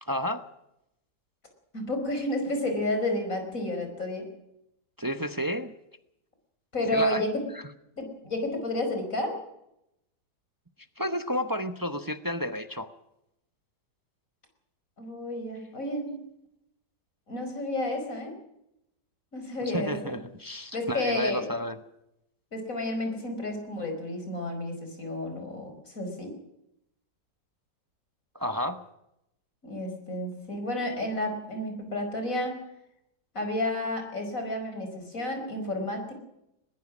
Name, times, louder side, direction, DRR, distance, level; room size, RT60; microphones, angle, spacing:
voice 1, 0.0-0.5 5.0-5.7 6.8-7.2 11.0-12.9 19.6-21.8 28.3-28.8, equal, 15° right, 10 dB, 0.8 m, -31 dB
voice 2, 1.7-4.3 6.7-7.4 8.0-9.3 15.0-16.2 17.3-18.4 19.3-20.2 20.7-21.5 22.5-26.3 29.6-32.6 33.3-36.1, left 1 dB, 50° left, 5 dB, 5.5 m, -31 dB
21.0 x 20.0 x 6.3 m, 0.82 s
omnidirectional pair, 1.8 m